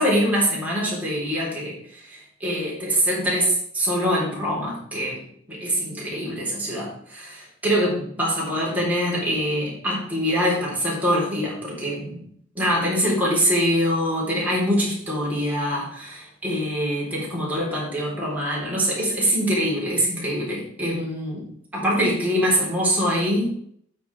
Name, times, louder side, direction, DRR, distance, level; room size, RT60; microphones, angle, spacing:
voice 1, 0.0-5.2 5.5-12.2 12.6-21.5 21.7-23.5, equal, 10° right, -5 dB, 3.9 m, -24 dB
9.1 x 6.6 x 4.8 m, 0.64 s
head